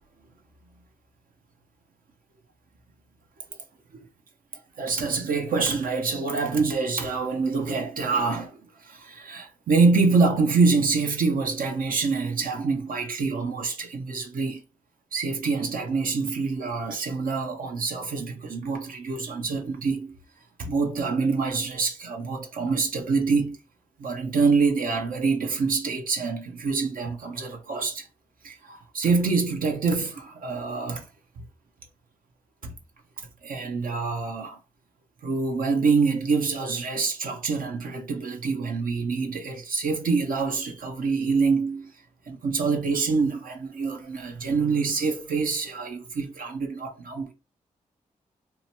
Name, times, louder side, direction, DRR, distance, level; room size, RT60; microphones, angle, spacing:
voice 1, 4.8-14.6 15.1-20.2 20.6-23.6 24.0-28.1 28.4-31.1 32.6-32.7 33.4-34.6 35.2-41.9 42.3-47.3, right 4 dB, 65° right, 0.6 m, -26 dB
2.8 x 2.2 x 2.8 m
supercardioid pair, 45°, 15 cm